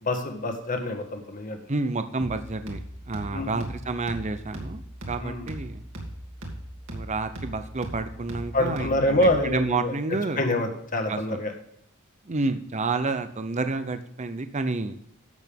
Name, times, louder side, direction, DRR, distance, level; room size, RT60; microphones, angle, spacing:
voice 1, 0.0-1.6 3.3-3.6 5.2-5.5 8.5-9.9 10.4-11.5, left 1 dB, 40° left, 4 dB, 1.7 m, -26 dB
voice 2, 1.7-2.8 3.1-5.8 6.9-10.4 11.1-11.4 12.3-15.0, right 3 dB, 35° right, 10 dB, 0.7 m, -29 dB
sound 1, 2.2-9.7, right 1 dB, 65° right, 2.7 m, -39 dB
12.0 x 8.1 x 3.5 m, 0.71 s
head